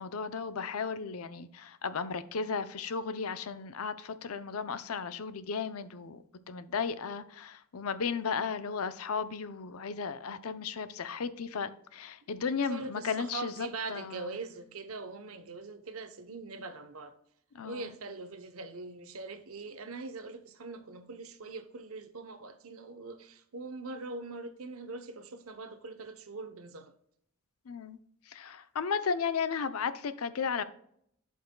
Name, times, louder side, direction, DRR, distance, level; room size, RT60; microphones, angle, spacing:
voice 1, 0.0-6.2 6.5-14.2 17.5-17.9 27.7-28.0 28.3-30.6, left 5 dB, 90° left, 0.6 m, -35 dB
voice 2, 12.2-17.2 17.6-26.9, right 3 dB, 80° right, 0.8 m, -42 dB
11.5 x 5.5 x 2.2 m
head